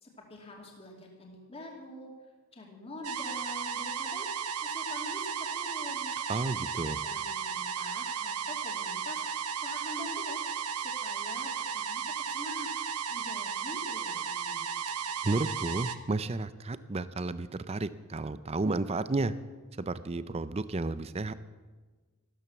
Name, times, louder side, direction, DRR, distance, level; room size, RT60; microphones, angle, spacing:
voice 1, 0.0-2.1 2.5-4.3 4.6-6.2 7.0-9.2 9.6-10.4 10.8-12.7 13.1-14.6, left 2 dB, 25° left, 0 dB, 2.5 m, -45 dB
sound 1, 3.0-16.0, right 7 dB, 90° right, 0.9 m, -34 dB
voice 2, 6.3-7.0 15.2-19.3 19.8-21.3, right 3 dB, 25° right, 14 dB, 0.5 m, -32 dB
14.0 x 13.0 x 7.1 m, 1.3 s
head